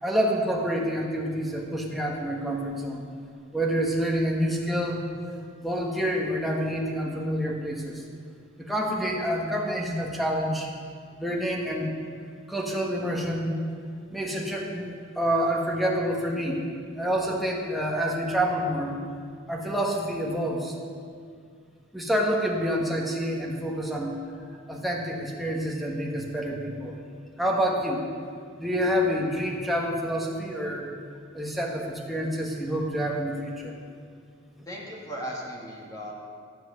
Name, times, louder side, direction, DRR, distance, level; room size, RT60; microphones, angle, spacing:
voice 1, 0.0-3.0 3.5-5.0 5.6-8.0 8.6-10.7 11.2-11.9 12.5-13.5 14.1-16.6 17.0-19.0 19.5-20.7 21.9-24.2 24.7-26.9 27.4-28.1 28.6-30.9 31.3-33.7, equal, ahead, -2 dB, 1.4 m, -27 dB
voice 2, 34.7-36.1, equal, 20° left, -3 dB, 2.1 m, -37 dB
13.5 x 7.7 x 6.5 m, 2.2 s
head